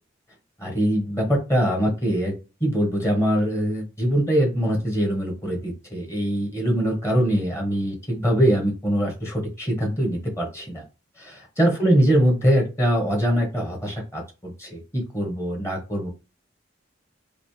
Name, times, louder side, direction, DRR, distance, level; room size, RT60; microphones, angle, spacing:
voice 1, 0.6-2.3 2.6-10.8 11.2-16.1, equal, 15° left, 0 dB, 1.2 m, -23 dB
5.0 x 2.1 x 3.2 m, 0.30 s
head